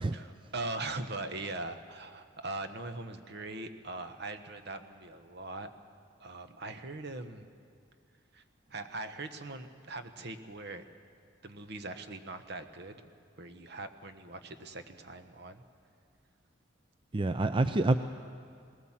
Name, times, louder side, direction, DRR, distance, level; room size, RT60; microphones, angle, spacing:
voice 1, 0.1-5.7 6.2-7.5 8.3-8.4 8.7-10.8 11.4-13.0 13.4-15.6, right 2 dB, 60° right, 8 dB, 1.2 m, -41 dB
voice 2, 17.1-18.0, right 2 dB, 25° right, 10 dB, 0.5 m, -27 dB
20.0 x 18.0 x 7.4 m, 2.3 s
head